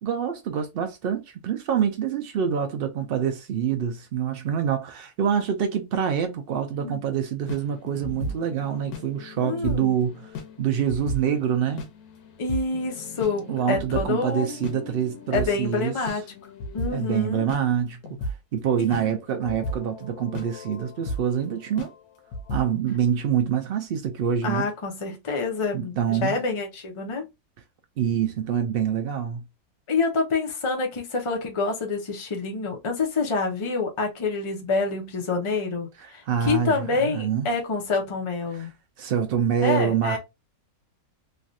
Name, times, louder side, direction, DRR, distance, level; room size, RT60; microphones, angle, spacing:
voice 1, 0.0-10.1 10.6-11.9 13.5-15.9 16.9-18.0 18.5-21.9 22.5-24.7 25.7-26.3 28.0-29.4 36.0-37.5 38.5-38.7 39.0-40.2, right 8 dB, 90° right, 0.5 m, -26 dB
voice 2, 6.7-7.1 9.4-9.9 12.4-14.8 15.3-16.2 16.7-17.5 18.8-19.1 24.4-27.2 29.9-38.7 39.6-40.2, left 4 dB, 30° left, 0.6 m, -27 dB
sound 1, 7.4-17.6 18.0-18.4 18.9-21.4 21.7-22.0 22.3-22.6, left 1 dB, 80° left, 1.2 m, -36 dB
3.1 x 2.5 x 2.5 m
omnidirectional pair, 1.6 m